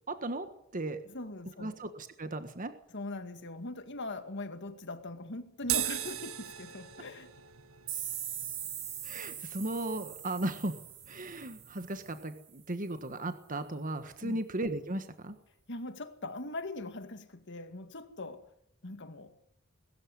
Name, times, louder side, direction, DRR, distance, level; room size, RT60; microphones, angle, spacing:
voice 1, 0.1-1.0 1.6-2.7 9.0-10.8 11.1-15.3, right 2 dB, 40° right, 1.5 m, -36 dB
voice 2, 1.1-1.8 2.9-7.3 14.2-14.4 15.7-18.4 18.8-19.3, left 2 dB, 60° left, 2.1 m, -41 dB
sound 1, 5.6-12.2, right 12 dB, 85° right, 1.5 m, -40 dB
sound 2, 7.9-12.5, right 10 dB, 65° right, 6.6 m, -42 dB
22.0 x 13.5 x 9.8 m
head